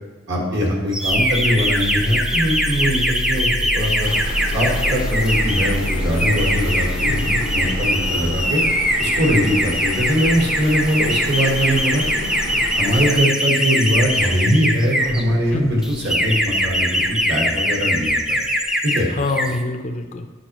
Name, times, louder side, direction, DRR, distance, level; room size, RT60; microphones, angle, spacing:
voice 1, 0.3-4.1 4.5-7.3 7.5-8.6 9.0-12.0 12.8-18.4 18.8-19.1, equal, 60° right, -2 dB, 1.5 m, -21 dB
sound 1, 0.9-15.2 15.8-19.0 19.3-19.6, equal, 5° right, 0.5 m, -22 dB
sound 2, 1.1-19.1, equal, 85° right, 0.6 m, -31 dB
sound 3, 4.0-13.2, left 2 dB, 80° left, 0.9 m, -31 dB
voice 2, 7.0-7.7 15.5-15.8 19.1-20.3, left 2 dB, 40° left, 4 dB, 0.6 m, -26 dB
9.7 x 5.3 x 3.0 m, 1.2 s
head